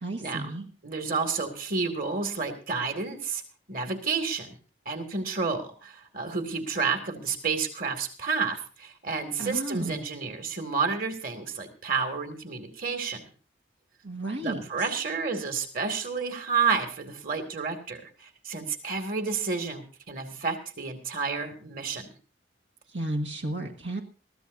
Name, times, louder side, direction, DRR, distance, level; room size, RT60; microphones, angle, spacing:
voice 1, 0.0-0.7 9.4-10.1 14.0-14.7 22.9-24.0, right 1 dB, 90° right, 3 dB, 1.7 m, -33 dB
voice 2, 0.8-3.4 3.7-4.6 4.9-13.2 14.4-22.1, right 5 dB, 50° right, 6 dB, 2.4 m, -30 dB
22.5 x 14.5 x 2.7 m, 0.36 s
head